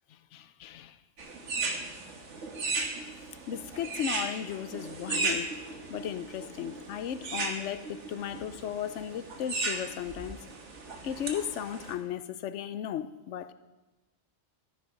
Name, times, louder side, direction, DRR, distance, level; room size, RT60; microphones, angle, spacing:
voice 1, 0.3-1.0 3.5-5.5 5.9-10.4 11.0-13.5, left 10 dB, 75° left, 13 dB, 0.9 m, -35 dB
sound 1, 1.2-11.9, right 3 dB, 75° right, 1.7 m, -36 dB
13.5 x 9.3 x 5.1 m, 1.1 s
omnidirectional pair, 1.2 m